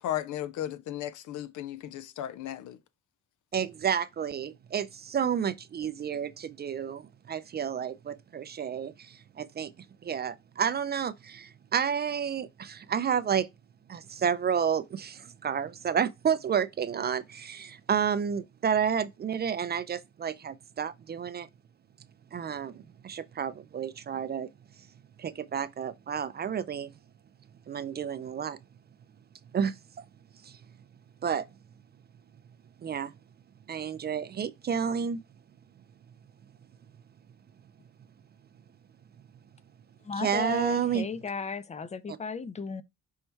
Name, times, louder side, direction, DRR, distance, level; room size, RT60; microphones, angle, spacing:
voice 1, 0.0-2.8, left 12 dB, 75° left, 0.6 m, -35 dB
voice 2, 3.5-9.7 10.0-13.5 13.9-21.5 22.3-24.5 25.2-26.9 27.7-28.6 29.5-30.0 30.4-30.6 31.2-31.5 32.8-33.1 33.7-35.2 40.2-41.1, right 7 dB, 35° right, 0.4 m, -30 dB
voice 3, 40.0-42.8, left 5 dB, 25° left, 0.5 m, -35 dB
5.4 x 2.2 x 4.4 m
cardioid pair, 90°, 30 cm